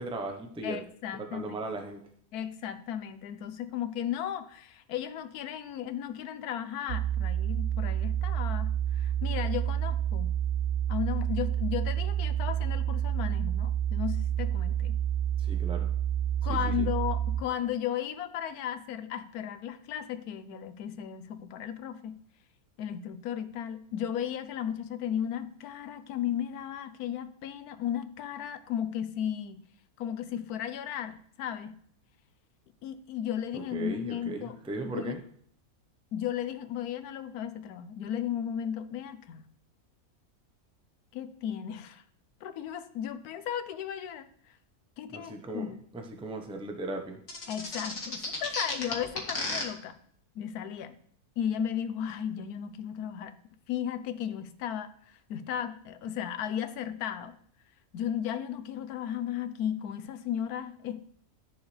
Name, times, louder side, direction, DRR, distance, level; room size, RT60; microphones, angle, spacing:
voice 1, 0.0-0.8 1.2-2.0 15.4-15.9 16.5-16.9 33.5-35.2 45.1-47.2, right 2 dB, 5° right, 4 dB, 0.6 m, -37 dB
voice 2, 0.6-1.7 2.3-10.3 10.9-15.0 16.4-22.2 22.8-29.6 30.0-31.8 32.8-35.1 36.1-39.4 41.1-42.0 42.4-44.3 45.0-45.8 47.5-50.0 50.3-51.0 51.4-53.3 53.7-57.4 57.9-61.1, left 9 dB, 90° left, 11 dB, 1.2 m, -35 dB
sound 1, 6.9-17.4, right 10 dB, 70° right, 0.6 m, -29 dB
sound 2, 47.3-49.6, left 2 dB, 55° left, 2.0 m, -33 dB
12.0 x 7.1 x 3.3 m, 0.63 s
omnidirectional pair, 1.6 m